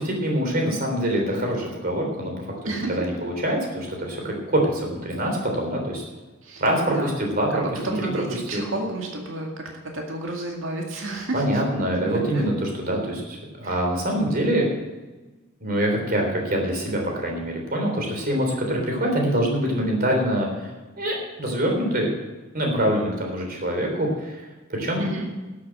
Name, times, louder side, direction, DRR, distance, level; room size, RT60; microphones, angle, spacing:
voice 1, 0.0-6.0 6.6-7.6 8.1-8.2 8.5-8.6 11.3-14.7 15.6-20.7 21.0-22.1 22.5-25.1, right 1 dB, 45° right, 1 dB, 3.5 m, -25 dB
voice 2, 2.7-3.0 6.4-6.6 6.9-7.1 7.5-11.6 12.0-12.5 13.6-13.8 25.0-25.3, right 2 dB, 70° right, 0 dB, 2.1 m, -31 dB
12.5 x 8.5 x 7.6 m, 1.2 s
head